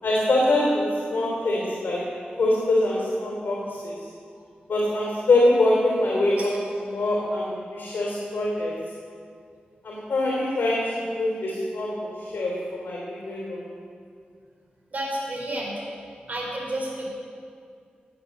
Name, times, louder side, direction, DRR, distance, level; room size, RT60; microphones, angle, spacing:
voice 1, 0.0-2.0 2.4-3.9 4.7-8.8 9.8-13.6, left 1 dB, 85° left, -4 dB, 3.3 m, -24 dB
voice 2, 14.9-15.7 16.3-17.1, right 1 dB, 55° right, -3 dB, 4.4 m, -30 dB
18.0 x 8.7 x 6.7 m, 2.3 s
wide cardioid pair, 110°, 3 cm